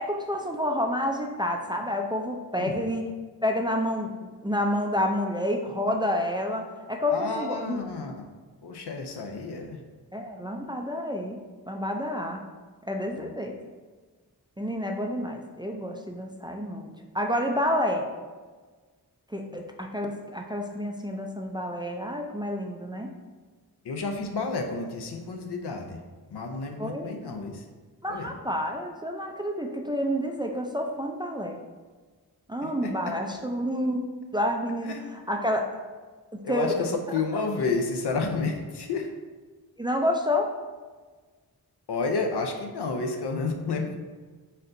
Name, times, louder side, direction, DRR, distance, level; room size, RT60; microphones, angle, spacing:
voice 1, 0.0-3.1 3.4-7.8 10.1-11.4 11.7-12.4 12.8-13.5 14.6-18.1 19.3-23.1 26.8-27.1 28.0-31.6 32.5-34.0 34.3-35.0 35.3-35.7 36.3-36.9 39.8-40.5, left 1 dB, 10° right, 2 dB, 0.4 m, -29 dB
voice 2, 7.1-8.2 8.6-9.8 13.2-13.3 19.5-19.6 23.8-26.0 26.3-27.7 28.1-28.3 32.8-32.9 34.8-35.0 36.4-39.1 41.9-43.9, left 4 dB, 75° left, 3 dB, 0.6 m, -30 dB
4.3 x 3.9 x 2.5 m, 1.4 s
cardioid pair, 45°, 40 cm